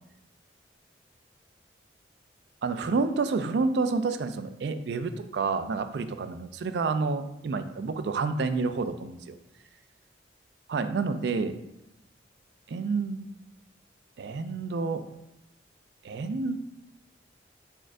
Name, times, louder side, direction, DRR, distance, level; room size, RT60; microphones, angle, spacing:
voice 1, 2.6-9.4 10.7-11.6 12.7-13.3 14.2-15.0 16.0-16.6, right 4 dB, 65° right, 10 dB, 0.3 m, -29 dB
4.7 x 4.3 x 2.5 m, 0.86 s
head